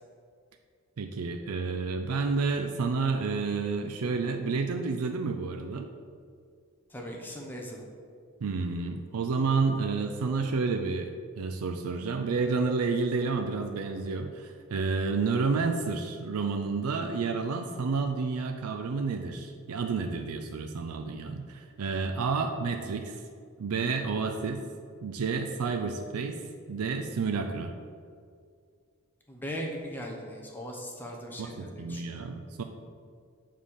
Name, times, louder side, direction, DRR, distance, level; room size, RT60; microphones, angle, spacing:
voice 1, 1.0-5.9 8.4-23.2 23.6-24.6 25.0-26.4 26.7-27.7 31.4-32.6, right 4 dB, 90° right, 6 dB, 0.5 m, -30 dB
voice 2, 6.9-7.9 29.3-32.2, equal, 10° left, -1 dB, 0.9 m, -39 dB
7.2 x 3.7 x 6.4 m, 2.2 s
head